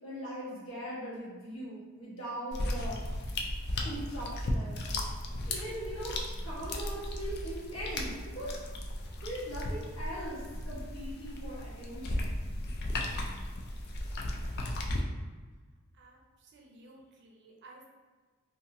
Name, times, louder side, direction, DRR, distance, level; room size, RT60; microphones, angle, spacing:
voice 1, 0.0-3.0 3.8-5.1 5.5-8.5 9.2-12.4, equal, 75° left, -8 dB, 1.2 m, -40 dB
sound 1, 2.5-15.0, left 1 dB, 50° left, 0.4 m, -36 dB
voice 2, 15.9-17.9, right 2 dB, 55° right, 0 dB, 0.5 m, -55 dB
2.8 x 2.6 x 2.5 m, 1.4 s
head